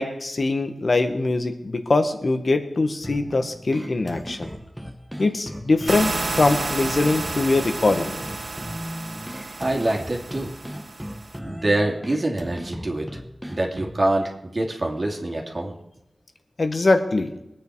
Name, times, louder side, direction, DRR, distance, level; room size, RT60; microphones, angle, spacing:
voice 1, 0.0-4.5 5.2-8.2 16.6-17.3, left 2 dB, 55° left, 7 dB, 1.7 m, -22 dB
sound 1, 3.0-14.0, equal, ahead, 1.6 m, -37 dB
sound 2, 5.9-11.4, right 3 dB, 55° right, 1.1 m, -31 dB
voice 2, 9.6-10.5 11.4-13.1 13.5-15.7, right 1 dB, 40° right, 0 dB, 2.6 m, -25 dB
23.0 x 9.1 x 4.8 m, 0.86 s
wide cardioid pair, 80°, 0 cm